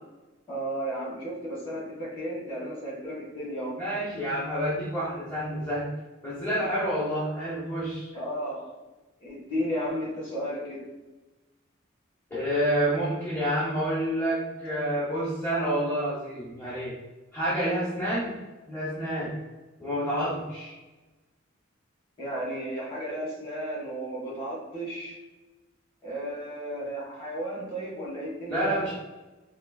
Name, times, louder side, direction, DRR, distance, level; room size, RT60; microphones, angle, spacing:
voice 1, 0.5-3.8 8.1-8.7 9.2-10.9 22.2-25.2 26.0-28.9, equal, 25° left, -5 dB, 1.3 m, -34 dB
voice 2, 3.8-5.9 6.2-8.1 12.3-16.9 17.3-18.4 18.7-19.3 19.8-20.7 28.5-28.9, equal, 10° left, -10 dB, 0.7 m, -28 dB
4.3 x 2.8 x 2.3 m, 1.2 s
head